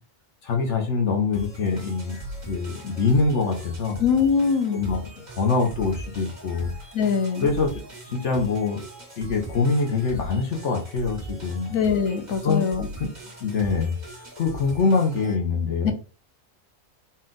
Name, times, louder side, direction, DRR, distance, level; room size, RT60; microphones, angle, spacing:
voice 1, 0.4-2.2 2.5-4.0 4.7-5.0 5.4-6.7 7.4-8.8 9.2-11.7 12.4-12.6 13.4-13.9 14.4-15.9, left 4 dB, 65° left, 2 dB, 1.2 m, -24 dB
sound 1, 1.3-15.3, right 2 dB, 35° right, 1.8 m, -40 dB
voice 2, 4.0-4.8 6.9-7.5 11.7-12.9 15.8-15.9, left 6 dB, 80° left, 7 dB, 1.2 m, -22 dB
4.3 x 2.5 x 3.8 m, 0.35 s
omnidirectional pair, 1.4 m